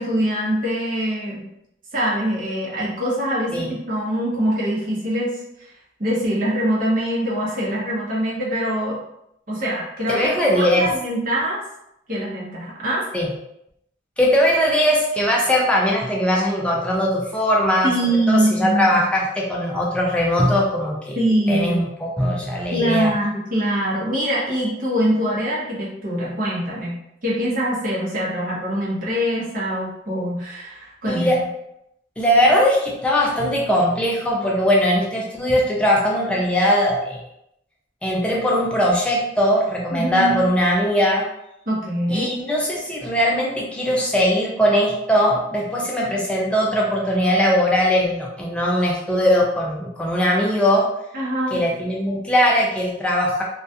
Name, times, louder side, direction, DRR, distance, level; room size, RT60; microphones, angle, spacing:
voice 1, 0.0-1.4 1.9-5.4 6.0-9.0 9.5-11.6 12.1-13.1 17.8-19.0 21.2-21.7 22.7-31.4 39.9-40.3 41.7-42.3 51.1-51.6, equal, 45° right, -5 dB, 0.8 m, -23 dB
voice 2, 10.1-10.9 13.1-13.3 14.2-17.9 18.3-21.2 21.5-23.1 31.1-31.4 32.2-37.2 38.0-41.3 42.1-50.9 51.5-53.4, equal, 5° left, -3 dB, 0.3 m, -20 dB
2.3 x 2.2 x 2.7 m, 0.80 s
head